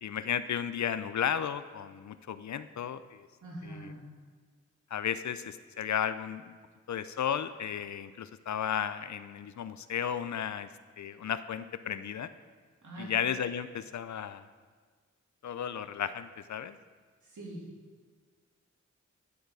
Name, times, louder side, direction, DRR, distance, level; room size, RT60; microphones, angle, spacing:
voice 1, 0.0-3.3 3.6-3.9 4.9-6.6 6.9-10.7 11.0-12.3 13.0-14.5 15.4-16.8, left 8 dB, 65° left, 13 dB, 0.4 m, -34 dB
voice 2, 3.4-4.0 12.8-13.1 17.2-17.6, right 1 dB, 75° right, -4 dB, 2.3 m, -43 dB
11.0 x 4.4 x 4.9 m, 1.6 s
cardioid pair, 45°, 31 cm